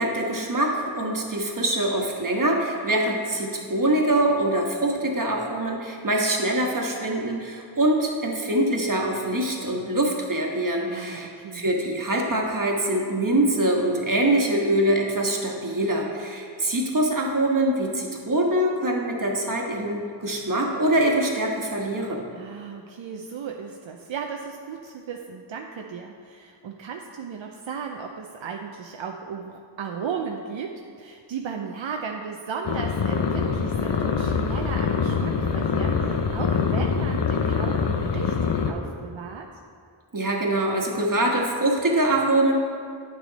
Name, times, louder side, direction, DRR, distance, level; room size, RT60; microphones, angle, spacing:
voice 1, 0.0-22.3 40.1-42.5, right 1 dB, 45° right, 0 dB, 1.3 m, -24 dB
voice 2, 10.9-11.6 22.3-39.5, right 6 dB, 75° right, 2 dB, 0.6 m, -35 dB
sound 1, 32.6-38.7, left 5 dB, 65° left, 0.7 m, -24 dB
9.0 x 6.1 x 4.0 m, 2.3 s
cardioid pair, 45°, 47 cm